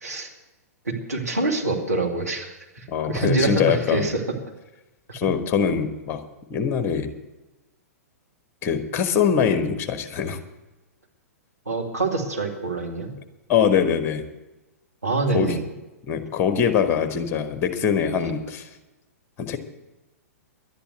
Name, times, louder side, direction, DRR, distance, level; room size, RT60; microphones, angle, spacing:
voice 1, 0.8-2.5 2.8-4.2 11.7-13.1 15.0-15.6, right 3 dB, 85° right, 1 dB, 2.3 m, -25 dB
voice 2, 2.9-4.0 5.1-6.2 6.5-7.1 8.6-10.4 13.5-14.3 15.3-15.6 16.1-18.7 19.4-19.6, left 7 dB, 25° left, 7 dB, 1.3 m, -23 dB
11.5 x 10.0 x 8.0 m, 1.0 s
figure-of-eight pair, 110°, 9 cm